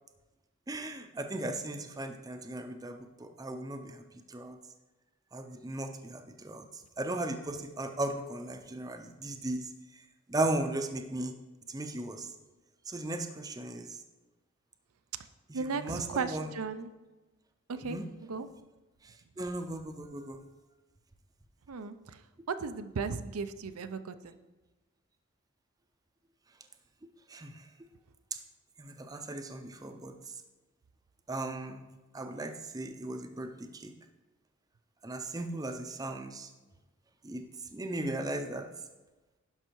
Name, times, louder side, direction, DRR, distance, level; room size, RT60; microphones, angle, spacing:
voice 1, 0.7-4.0 4.3-4.6 5.3-6.7 7.0-9.7 10.3-11.3 11.7-12.3 12.9-14.0 15.7-16.5 17.8-18.0 19.4-20.4 27.3-27.6 28.3-28.4 28.8-30.2 31.3-31.8 32.1-33.9 35.0-36.5 37.2-37.4 37.7-38.7, right 2 dB, 15° right, 6 dB, 0.6 m, -36 dB
voice 2, 15.5-16.9 17.7-18.5 21.7-22.2 22.5-24.4, right 4 dB, 85° right, 10 dB, 0.5 m, -36 dB
11.5 x 5.5 x 4.6 m, 1.1 s
head